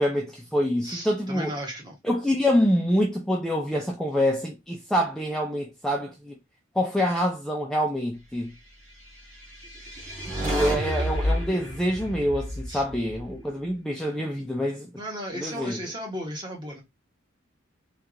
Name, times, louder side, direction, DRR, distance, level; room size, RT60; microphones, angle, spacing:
voice 1, 0.0-1.5 2.0-6.4 6.8-8.5 10.4-14.9 15.3-15.8, equal, 5° left, 0.4 m, -26 dB
voice 2, 0.8-2.0 12.7-12.8 14.9-16.8, equal, 20° right, 1.2 m, -35 dB
sound 1, 9.3-13.7, equal, 40° right, 1.9 m, -30 dB
3.4 x 2.4 x 2.9 m
head